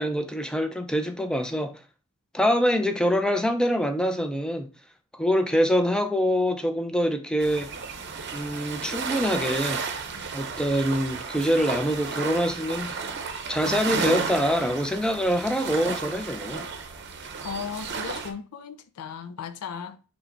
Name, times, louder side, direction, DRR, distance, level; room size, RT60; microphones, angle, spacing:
voice 1, 0.0-1.8 2.3-4.7 5.1-7.7 8.3-9.8 10.3-13.1 13.5-16.7, equal, 5° left, 0.4 m, -25 dB
sound 1, 7.4-18.3, right 5 dB, 50° right, 0.7 m, -33 dB
voice 2, 17.4-20.1, left 7 dB, 85° left, 0.4 m, -36 dB
5.7 x 2.1 x 3.8 m
head